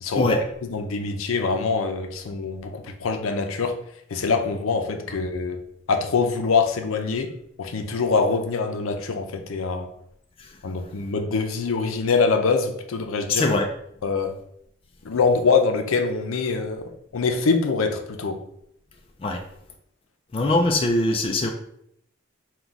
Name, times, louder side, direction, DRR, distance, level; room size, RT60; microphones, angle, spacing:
voice 1, 0.0-0.4 0.7-3.8 4.1-5.6 5.9-7.3 7.6-9.9 10.6-13.6 14.0-14.3 15.0-18.4, left 4 dB, 80° left, 6 dB, 0.5 m, -24 dB
voice 2, 13.4-13.7 19.2-19.4 20.3-21.5, left 2 dB, 25° left, 3 dB, 0.3 m, -22 dB
4.5 x 2.3 x 3.9 m, 0.73 s
head